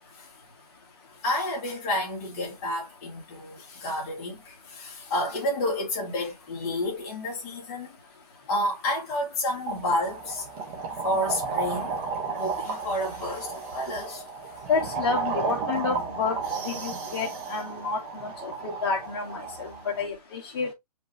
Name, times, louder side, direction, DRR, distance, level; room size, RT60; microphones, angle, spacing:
voice 1, 1.2-8.0 8.5-10.5 11.0-12.0 12.3-14.2, left 1 dB, 20° left, 2.0 m, -30 dB
sound 1, 9.7-20.0, right 4 dB, 20° right, 1.0 m, -33 dB
voice 2, 14.7-16.4 16.6-20.7, left 5 dB, 35° left, 1.8 m, -30 dB
5.1 x 3.1 x 3.1 m
hypercardioid pair, 175°, 21 cm